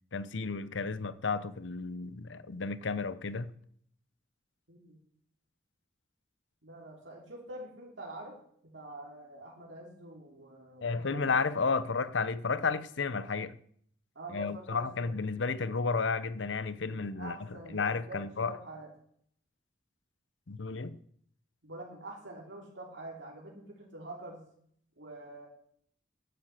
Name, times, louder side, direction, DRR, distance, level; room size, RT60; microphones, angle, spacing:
voice 1, 0.1-3.5 10.8-13.5 14.3-17.4 17.7-18.5 20.5-21.0, left 4 dB, 75° left, 0.8 m, -32 dB
voice 2, 6.6-8.4 8.6-11.3 14.1-15.2 16.9-18.9 21.6-24.4 25.0-25.5, right 2 dB, 75° right, 3.2 m, -46 dB
11.0 x 10.0 x 7.6 m
head